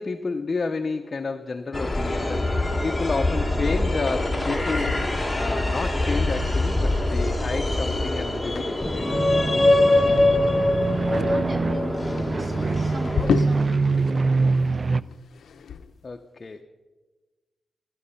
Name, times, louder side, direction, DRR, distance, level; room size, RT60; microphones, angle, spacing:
voice 1, 0.0-9.2 16.0-16.6, left 4 dB, 40° left, 5 dB, 0.7 m, -31 dB
sound 1, 1.7-13.3, left 1 dB, 10° left, 1.3 m, -23 dB
sound 2, 1.8-14.1 14.4-16.1, left 7 dB, 85° left, 0.6 m, -36 dB
sound 3, 9.1-15.0, right 3 dB, 40° right, 0.3 m, -25 dB
voice 2, 10.1-14.8, equal, 20° right, 3 dB, 2.0 m, -40 dB
17.0 x 11.0 x 5.6 m, 1.3 s
wide cardioid pair, 105°, 0 cm